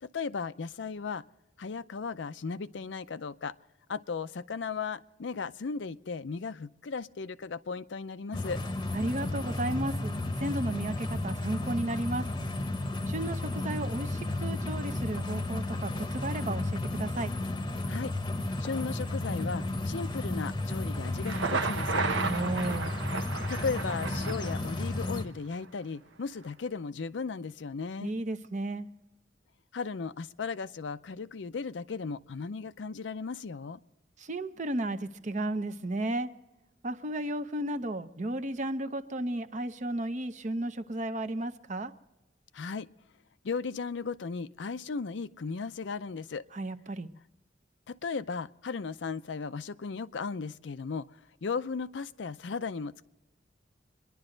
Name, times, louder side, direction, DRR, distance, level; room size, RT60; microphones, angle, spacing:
voice 1, 0.0-1.2 1.6-3.5 3.9-8.6 17.9-18.1 18.6-22.0 23.5-28.1 29.7-33.8 42.5-42.9 43.4-46.4 47.9-53.0, left 5 dB, 75° left, 13 dB, 0.5 m, -36 dB
sound 1, 8.3-25.3, left 2 dB, 25° left, 0.9 m, -33 dB
voice 2, 8.9-10.1 10.4-12.3 13.1-17.3 22.2-22.9 28.0-28.9 34.2-36.3 36.8-41.9 46.5-47.1, right 1 dB, 40° right, 10 dB, 0.7 m, -33 dB
Thunder, 21.1-25.1, right 4 dB, 85° right, 0.9 m, -33 dB
25.5 x 11.0 x 3.9 m, 1.0 s
head